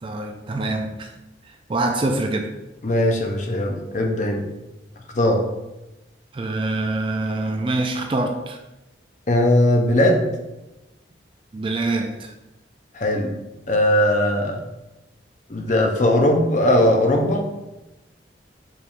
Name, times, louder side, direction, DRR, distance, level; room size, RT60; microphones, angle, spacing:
voice 1, 0.0-1.1 1.5-2.5 6.3-8.6 11.5-12.3, right 2 dB, 30° right, 4 dB, 0.3 m, -25 dB
voice 2, 2.8-4.4 5.1-5.4 9.3-10.3 12.9-13.3 13.7-14.6 15.5-17.4, left 1 dB, 40° left, 2 dB, 0.5 m, -19 dB
4.8 x 3.4 x 2.5 m, 1.0 s
head